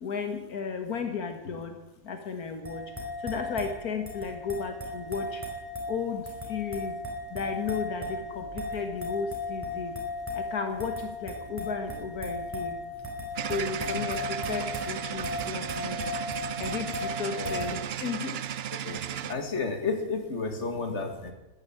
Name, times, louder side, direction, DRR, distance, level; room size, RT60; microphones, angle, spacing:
voice 1, 0.0-1.8 2.0-2.9 3.2-5.4 5.9-6.9 7.3-10.0 10.3-12.8 13.5-16.0 16.6-18.4 18.9-19.0, left 5 dB, 80° left, 6 dB, 1.9 m, -34 dB
sound 1, 2.6-17.6, left 2 dB, 10° right, 4.1 m, -36 dB
sound 2, 13.4-19.3, right 9 dB, 60° right, 0.7 m, -35 dB
voice 2, 17.4-17.7 18.8-19.0 19.3-21.3, left 4 dB, 50° left, 5 dB, 2.4 m, -31 dB
14.5 x 10.5 x 8.7 m, 1.0 s
omnidirectional pair, 1.5 m